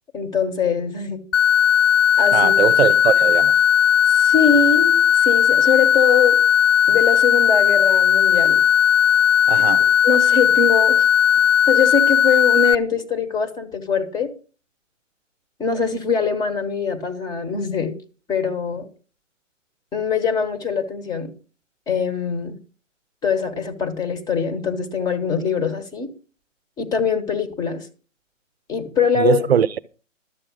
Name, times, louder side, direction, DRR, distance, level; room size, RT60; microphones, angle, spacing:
voice 1, 0.1-1.2 2.2-2.5 4.1-6.4 6.9-8.6 10.0-11.1 11.7-14.3 15.6-17.9 18.3-18.9 19.9-21.3 21.9-22.6 23.2-26.1 26.8-27.9 28.7-29.5, left 6 dB, 10° left, 1.2 m, -22 dB
sound 1, 1.3-12.7, left 9 dB, 70° left, 0.5 m, -16 dB
voice 2, 2.3-3.6 9.5-9.9 29.2-29.8, right 8 dB, 50° right, 0.7 m, -20 dB
12.5 x 7.5 x 6.2 m
figure-of-eight pair, 135°, 39 cm